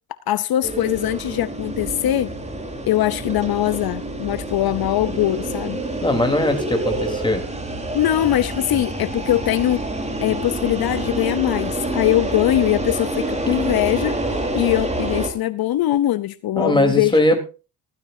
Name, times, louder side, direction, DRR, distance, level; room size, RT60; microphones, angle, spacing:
voice 1, 0.3-2.3 2.9-5.8 7.9-9.8 10.2-14.2 14.5-17.2, left 13 dB, 70° left, 0.8 m, -21 dB
sound 1, 0.6-15.3, right 2 dB, 15° right, 3.9 m, -27 dB
voice 2, 6.0-7.5 16.6-17.4, left 1 dB, 10° left, 3.6 m, -19 dB
15.5 x 14.5 x 2.7 m
cardioid pair, 90°, 38 cm